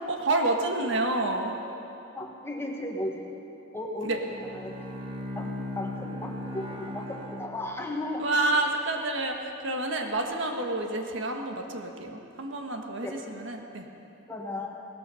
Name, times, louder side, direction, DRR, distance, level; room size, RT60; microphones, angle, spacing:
voice 1, 0.1-1.5 4.0-4.2 8.2-13.9, right 2 dB, 70° right, 3 dB, 1.4 m, -29 dB
voice 2, 2.1-3.3 3.7-4.2 4.5-4.8 5.3-8.2 13.0-13.2 14.3-14.7, left 1 dB, 10° left, 0 dB, 1.4 m, -35 dB
Bowed string instrument, 4.2-8.3, left 1 dB, 25° right, 1.2 m, -38 dB
17.5 x 14.0 x 5.7 m, 2.9 s
head